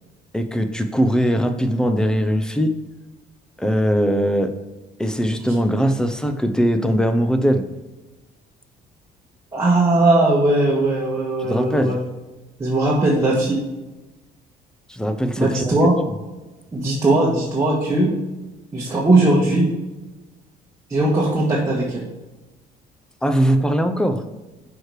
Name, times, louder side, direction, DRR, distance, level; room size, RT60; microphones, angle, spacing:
voice 1, 0.3-2.8 3.6-4.5 5.0-7.7 11.4-12.0 14.9-15.8 23.2-24.2, equal, 5° left, 8 dB, 0.7 m, -20 dB
voice 2, 9.5-12.0 12.6-13.6 15.4-16.0 16.7-18.2 18.7-19.8 20.9-22.1, right 2 dB, 15° right, -5 dB, 1.5 m, -19 dB
6.2 x 4.9 x 4.7 m, 1.1 s
cardioid pair, 110°, 17 cm